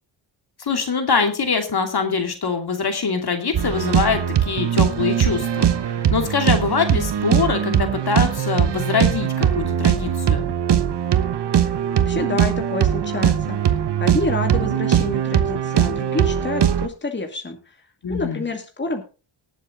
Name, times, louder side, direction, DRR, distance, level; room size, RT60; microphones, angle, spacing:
voice 1, 0.6-10.5 18.0-18.4, left 5 dB, 50° left, 6 dB, 2.6 m, -23 dB
sound 1, 3.5-16.9, right 9 dB, 60° right, 1.1 m, -20 dB
voice 2, 12.0-17.8 18.1-19.0, left 2 dB, 25° left, 4 dB, 2.3 m, -28 dB
18.5 x 7.4 x 3.9 m, 0.33 s
cardioid pair, 75°, 47 cm